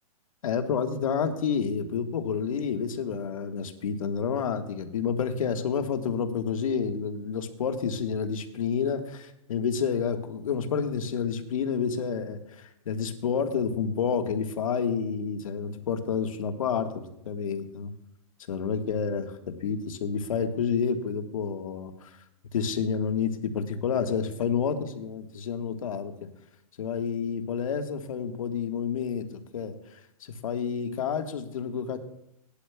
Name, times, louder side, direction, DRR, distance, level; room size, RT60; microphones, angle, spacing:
voice 1, 0.4-17.9 18.5-22.2 22.5-26.1 26.8-29.8 30.4-32.0, left 6 dB, 65° left, 5 dB, 1.5 m, -29 dB
19.0 x 11.5 x 2.3 m, 0.81 s
hypercardioid pair, 175°, 19 cm